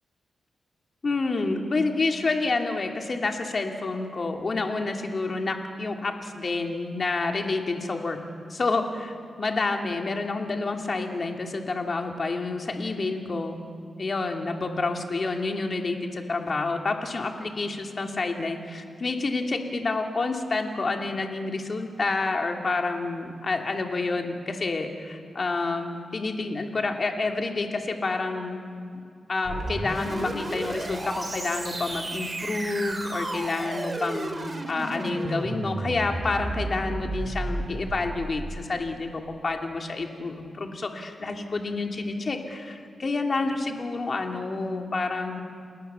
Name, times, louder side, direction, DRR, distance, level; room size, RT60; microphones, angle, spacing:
voice 1, 1.0-8.2 8.5-13.6 14.0-28.6 29.3-34.3 34.7-45.4, left 3 dB, 40° left, 3 dB, 2.6 m, -29 dB
sound 1, 29.5-38.6, right 2 dB, 30° right, 2.5 m, -33 dB
29.5 x 20.0 x 6.9 m, 2.2 s
cardioid pair, 95°, 0 cm